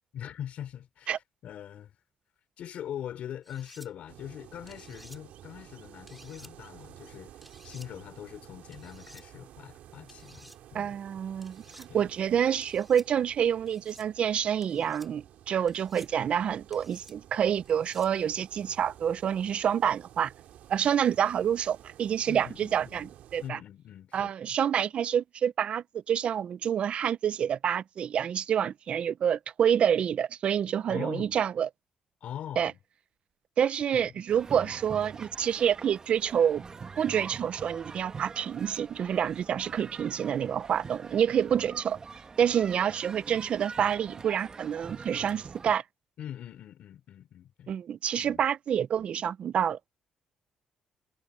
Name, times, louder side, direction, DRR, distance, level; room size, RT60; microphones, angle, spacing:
voice 1, 0.1-2.0 2.6-7.3 7.6-11.0 11.9-12.0 22.3-23.1 23.4-24.6 30.9-31.4 32.2-32.8 33.9-34.1 34.5-34.8 46.2-47.7 48.2-48.4, left 10 dB, 65° left, 3.9 m, -42 dB
sound 1, 3.4-3.9 4.7-5.2 6.1-6.5 7.4-7.9 8.7-9.2 10.1-10.6 11.4-11.9 12.6-13.1 13.7-14.1 14.6-15.1 15.7-16.1 16.7-17.1 17.6-18.1, equal, ahead, 4.8 m, -53 dB
sound 2, 4.1-23.5, right 11 dB, 80° right, 2.8 m, -52 dB
voice 2, 10.7-20.3 20.7-23.6 24.1-31.7 32.6-32.7 33.6-36.6 37.0-42.0 42.4-45.8 47.7-49.8, right 8 dB, 55° right, 0.6 m, -28 dB
sound 3, 34.3-45.8, right 5 dB, 30° right, 1.3 m, -44 dB
cardioid pair, 115°, 2 cm